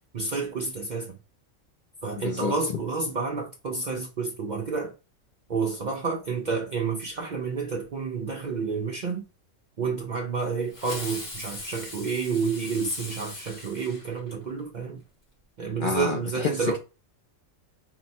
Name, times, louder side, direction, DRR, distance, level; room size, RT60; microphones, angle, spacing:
voice 1, 0.1-1.2 2.0-4.9 5.5-9.2 9.8-15.0 15.6-16.8, right 4 dB, 55° right, 0.5 m, -29 dB
voice 2, 2.2-2.5 15.8-16.8, left 5 dB, 60° left, 0.5 m, -29 dB
Fireworks, 10.7-14.6, left 2 dB, 85° left, 2.4 m, -40 dB
4.0 x 2.1 x 4.1 m
omnidirectional pair, 1.3 m